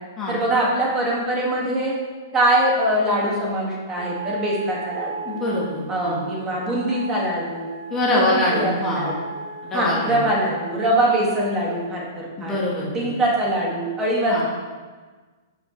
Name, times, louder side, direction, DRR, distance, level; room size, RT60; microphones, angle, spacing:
voice 1, 0.3-1.9 2.3-5.3 5.9-7.7 8.1-9.1 9.7-12.6 12.9-14.4, right 1 dB, 20° right, -3 dB, 1.9 m, -23 dB
sound 1, 4.0-11.9, right 4 dB, 55° right, 0.7 m, -37 dB
voice 2, 5.2-6.2 7.9-9.1 9.6-10.2 12.4-13.1 14.3-14.4, left 1 dB, 20° left, -5 dB, 1.5 m, -24 dB
11.0 x 5.5 x 3.2 m, 1.4 s
hypercardioid pair, 145°, 2 cm